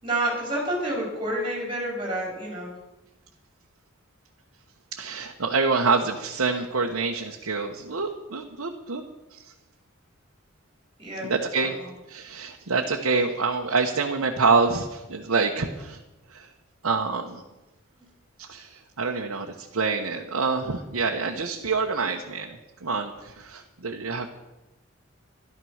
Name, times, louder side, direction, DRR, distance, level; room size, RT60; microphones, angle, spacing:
voice 1, 0.0-2.7 11.0-11.3 11.6-11.8 17.9-18.1, right 1 dB, 25° right, -2 dB, 4.7 m, -29 dB
voice 2, 4.9-9.0 9.3-9.5 11.2-11.8 12.1-16.0 16.3-16.5 16.8-17.4 18.4-24.3, right 4 dB, 85° right, 1 dB, 1.1 m, -26 dB
12.5 x 12.0 x 6.4 m, 1.0 s
head